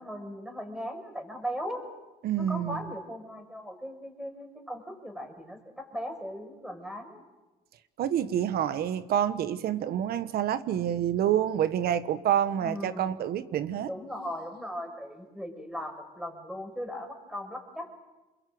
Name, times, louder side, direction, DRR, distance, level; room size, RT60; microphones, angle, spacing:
voice 1, 0.0-1.8 2.4-7.2 12.6-13.1 13.9-17.9, equal, 5° right, 5 dB, 5.7 m, -38 dB
voice 2, 2.2-2.8 8.0-13.9, right 10 dB, 65° right, 12 dB, 1.2 m, -27 dB
27.5 x 22.0 x 7.8 m, 1.1 s
cardioid pair, 110°, 17 cm